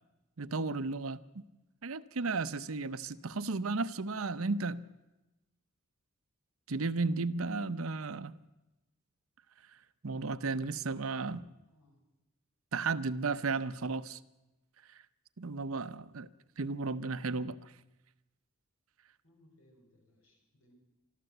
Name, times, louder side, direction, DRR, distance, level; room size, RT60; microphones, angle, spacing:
voice 1, 0.4-1.4 1.8-4.8 6.7-8.4 10.0-11.4 12.7-14.2 14.9-15.0 15.4-16.3 16.6-17.7, right 3 dB, 75° right, 13 dB, 0.8 m, -34 dB
voice 2, 11.7-12.0 19.2-20.7, left 1 dB, 75° left, 2 dB, 6.3 m, -67 dB
24.5 x 13.5 x 8.0 m, 1.0 s
head